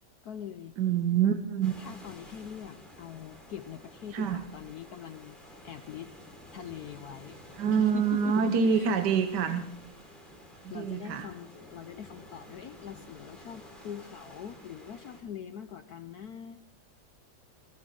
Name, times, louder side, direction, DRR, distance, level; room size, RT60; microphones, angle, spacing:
voice 1, 0.2-0.8 1.8-5.4 5.6-6.1 6.5-7.4 7.7-9.1 9.4-9.7 10.7-16.6, left 9 dB, 75° left, 9 dB, 0.8 m, -42 dB
voice 2, 0.8-1.7 4.1-4.4 7.5-9.6 10.6-11.3, right 7 dB, 60° right, 8 dB, 1.2 m, -26 dB
sound 1, 1.6-15.2, left 1 dB, ahead, 4.2 m, -51 dB
18.5 x 16.0 x 3.7 m, 0.79 s
omnidirectional pair, 2.4 m